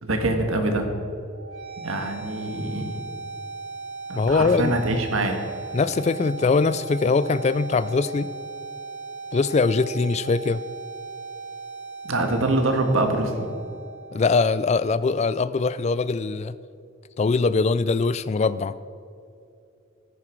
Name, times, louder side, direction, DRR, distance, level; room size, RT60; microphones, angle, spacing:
voice 1, 0.0-0.8 1.8-3.0 4.1-5.4 12.0-13.5, right 2 dB, 80° right, 4 dB, 1.6 m, -24 dB
sound 1, 1.3-15.3, right 4 dB, 65° right, 1.8 m, -38 dB
voice 2, 4.1-4.8 5.7-8.3 9.3-10.6 14.1-16.5 17.2-18.7, left 4 dB, 30° left, 16 dB, 0.3 m, -22 dB
14.5 x 9.9 x 4.6 m, 2.5 s
head